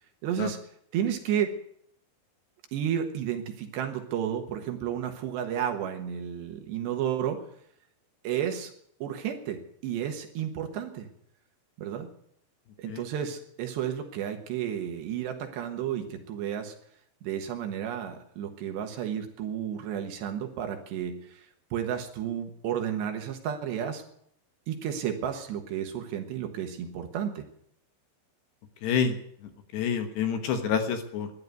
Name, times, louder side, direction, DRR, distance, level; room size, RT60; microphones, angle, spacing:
voice 1, 0.2-0.6 0.9-1.5 2.7-7.4 8.2-8.7 9.0-11.1 11.8-12.1 12.8-16.7 17.2-24.0 24.7-27.4, right 9 dB, 70° right, 5 dB, 3.3 m, -32 dB
voice 2, 28.8-29.2 29.4-31.3, left 7 dB, 70° left, 7 dB, 3.2 m, -28 dB
13.5 x 11.0 x 9.3 m, 0.70 s
omnidirectional pair, 5.4 m